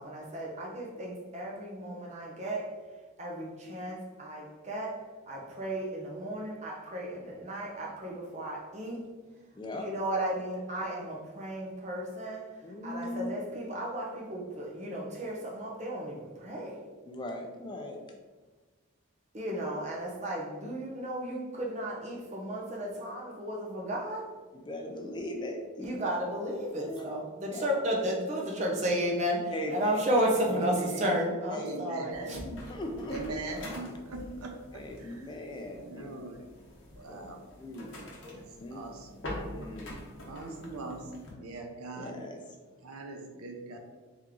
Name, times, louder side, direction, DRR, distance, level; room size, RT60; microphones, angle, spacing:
voice 1, 0.0-2.7 3.2-9.0 9.7-12.5 12.8-16.8 19.3-24.3 25.8-32.4, equal, 30° right, -2 dB, 0.7 m, -33 dB
voice 2, 9.6-9.9 12.6-13.4 17.0-18.1 24.5-25.9 26.8-27.1 27.5-27.7 29.5-29.9 31.5-31.7 32.4-33.4 34.2-34.3 34.7-36.2 37.1-37.3 37.6-37.9 38.6-38.9 39.4-40.0 41.9-42.4, left 1 dB, 20° left, 3 dB, 0.3 m, -39 dB
voice 3, 31.6-32.4 33.1-34.5 35.8-36.4 37.0-37.4 38.3-38.4 38.7-38.9 40.3-42.2 42.8-43.8, right 2 dB, 85° right, 3 dB, 0.6 m, -40 dB
sound 1, 32.1-41.3, left 1 dB, 55° left, 0.9 m, -45 dB
3.5 x 3.0 x 3.7 m, 1.3 s
head